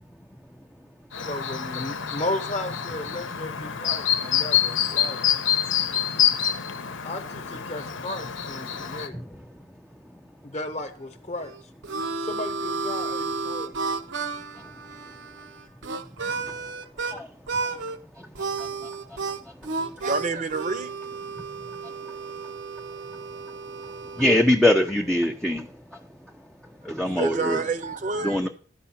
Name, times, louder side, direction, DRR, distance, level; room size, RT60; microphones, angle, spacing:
Chirp tweet, 1.1-9.1, left 9 dB, 85° left, 0.8 m, -27 dB
voice 1, 1.3-5.2 7.0-9.2 10.4-11.5 12.2-13.8, left 2 dB, 35° left, 0.9 m, -34 dB
Harmonica, 11.4-17.2 17.5-18.0 18.4-24.4, right 4 dB, 80° right, 0.7 m, -32 dB
voice 2, 20.0-20.9 27.2-28.4, right 3 dB, 40° right, 0.7 m, -28 dB
voice 3, 24.2-25.7 26.8-27.6 28.2-28.5, left 1 dB, ahead, 0.4 m, -22 dB
12.0 x 4.7 x 5.7 m
head